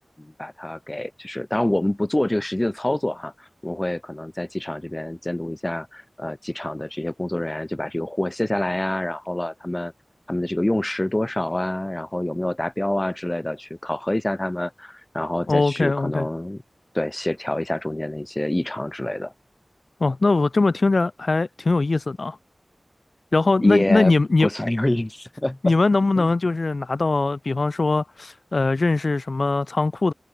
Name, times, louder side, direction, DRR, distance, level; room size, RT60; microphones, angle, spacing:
voice 1, 0.2-9.9 10.3-16.6 16.9-19.3 23.6-24.1 24.4-25.7 26.2-26.3, left 1 dB, 25° left, 7.3 m, -26 dB
voice 2, 15.5-16.3 20.0-22.4 23.3-24.5 25.6-30.1, left 3 dB, 65° left, 6.0 m, -21 dB
wide cardioid pair, 65°, 0 cm